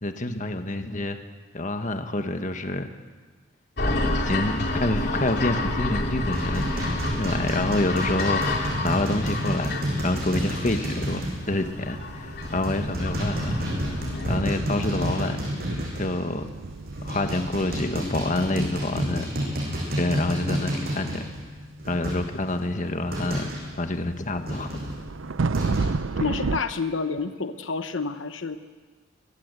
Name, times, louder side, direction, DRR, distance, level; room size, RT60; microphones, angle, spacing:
voice 1, 0.0-1.2 1.5-2.9 4.2-13.6 14.3-15.4 15.9-16.5 17.0-19.3 20.0-21.2 21.9-23.5 23.8-24.8, left 2 dB, 40° left, 7 dB, 1.4 m, -27 dB
sound 1, 3.8-14.4, left 2 dB, 55° left, 2.9 m, -30 dB
sound 2, 6.3-11.6 11.8-12.0 12.4-16.4 16.9-23.7 24.5-25.8, equal, 50° right, 7.8 m, -30 dB
sound 3, 10.1-26.6, right 4 dB, 85° right, 0.6 m, -35 dB
voice 2, 26.2-28.6, left 4 dB, 75° left, 9 dB, 1.0 m, -29 dB
23.0 x 17.5 x 8.3 m, 1.4 s
head